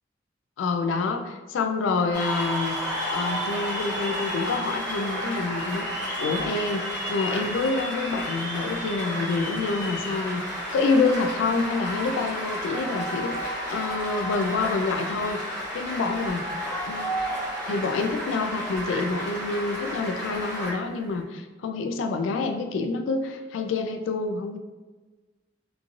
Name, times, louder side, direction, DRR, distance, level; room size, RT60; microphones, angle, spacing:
voice 1, 0.6-2.8 3.1-5.9 6.2-10.4 10.7-16.4 16.9-17.1 17.6-24.6, left 4 dB, 90° left, 6 dB, 0.3 m, -27 dB
sound 1, 1.9-21.2, right 1 dB, 90° right, 0.7 m, -44 dB
Cheering / Applause, 2.1-20.7, equal, 10° left, 0.7 m, -32 dB
3.0 x 2.4 x 2.4 m, 1.3 s
head